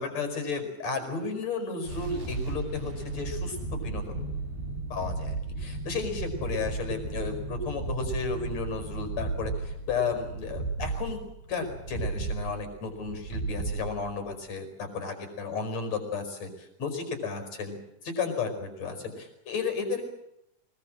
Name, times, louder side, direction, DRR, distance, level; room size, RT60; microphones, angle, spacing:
voice 1, 0.0-4.3 4.9-11.2 11.5-17.8 18.0-20.0, left 4 dB, 45° left, 7 dB, 6.3 m, -33 dB
sound 1, 1.9-14.4, right 3 dB, 80° right, 7.6 m, -34 dB
24.5 x 21.0 x 7.7 m, 0.82 s
omnidirectional pair, 4.4 m